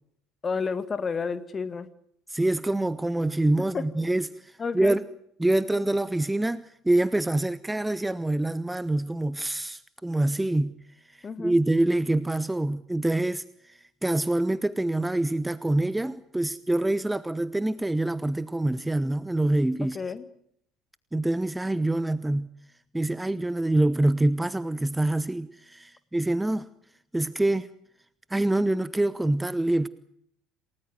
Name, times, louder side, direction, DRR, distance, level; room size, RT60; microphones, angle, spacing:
voice 1, 0.4-1.9 3.6-3.9 4.6-5.0 11.2-11.6 19.8-20.2, left 5 dB, 25° left, 2.0 m, -31 dB
voice 2, 2.3-5.0 5.4-10.7 11.4-20.0 21.1-22.5 22.9-26.7 27.1-27.7 28.3-29.9, right 1 dB, 10° right, 0.9 m, -25 dB
28.5 x 18.5 x 7.8 m
figure-of-eight pair, 65°, 0 cm